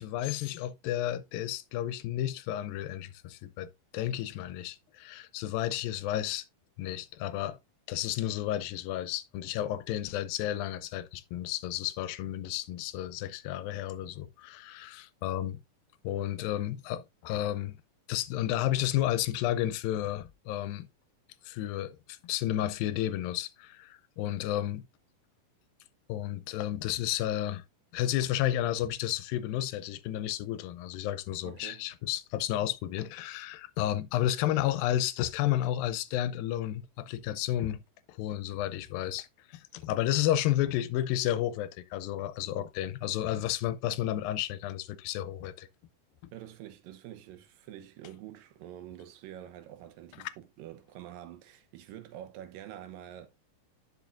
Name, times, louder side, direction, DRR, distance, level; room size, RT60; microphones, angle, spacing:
voice 1, 0.0-6.4 6.8-7.6 7.9-15.6 16.0-17.8 18.1-20.9 21.4-24.8 26.1-27.6 27.9-37.8 38.1-45.7 46.2-46.3, left 13 dB, 80° left, 2.3 m, -32 dB
voice 2, 31.4-31.9 46.3-53.3, right 11 dB, 75° right, 2.5 m, -46 dB
11.0 x 5.5 x 2.5 m
omnidirectional pair, 4.2 m